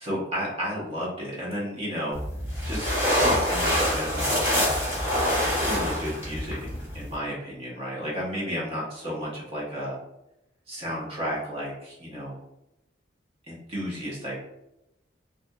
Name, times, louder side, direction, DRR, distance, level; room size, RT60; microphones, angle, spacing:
voice 1, 0.0-2.2 2.6-4.8 5.4-10.0 10.7-12.3 13.5-14.4, equal, 35° right, -6 dB, 0.8 m, -32 dB
sound 1, 2.1-7.1, equal, 10° right, 1.2 m, -25 dB
2.7 x 2.5 x 2.2 m, 0.89 s
head